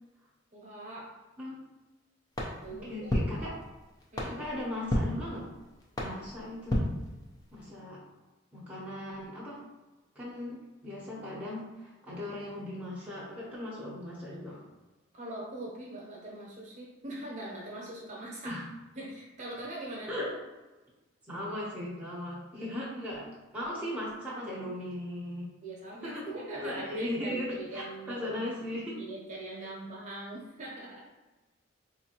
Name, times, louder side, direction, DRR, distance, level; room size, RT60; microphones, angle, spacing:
voice 1, 0.5-1.1 2.6-3.1 4.1-4.3 15.1-18.6 18.9-20.1 25.6-28.4 29.0-31.1, right 2 dB, 35° right, -4 dB, 0.8 m, -42 dB
sound 1, 2.3-7.7, left 1 dB, 20° left, 0.5 m, -34 dB
voice 2, 2.7-3.6 4.3-5.5 6.0-6.9 7.5-8.0 8.5-9.6 10.1-14.6 18.4-18.7 20.1-20.3 21.3-23.3 23.5-25.5 26.0-26.3 26.5-29.0 29.6-29.7, left 1 dB, 5° right, -7 dB, 0.8 m, -38 dB
4.2 x 2.5 x 2.8 m, 1.1 s
head